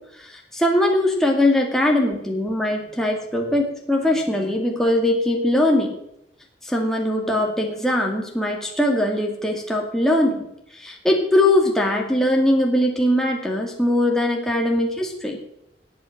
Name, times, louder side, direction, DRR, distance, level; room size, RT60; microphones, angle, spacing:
voice 1, 0.2-5.9 6.6-10.5 10.7-15.4, left 1 dB, 5° left, 0 dB, 2.1 m, -21 dB
19.0 x 7.9 x 6.0 m, 0.81 s
head